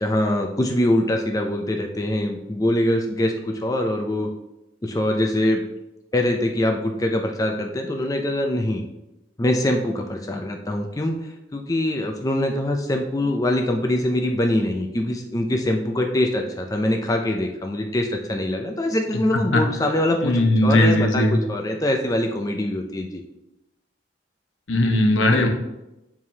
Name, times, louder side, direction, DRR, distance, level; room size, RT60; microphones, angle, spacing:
voice 1, 0.0-4.3 4.8-5.6 6.1-8.8 9.4-11.1 11.5-23.2, left 1 dB, 20° left, 3 dB, 0.4 m, -23 dB
voice 2, 20.2-21.4 24.7-25.5, left 1 dB, 80° left, 4 dB, 0.8 m, -18 dB
7.3 x 4.7 x 2.8 m, 0.94 s
head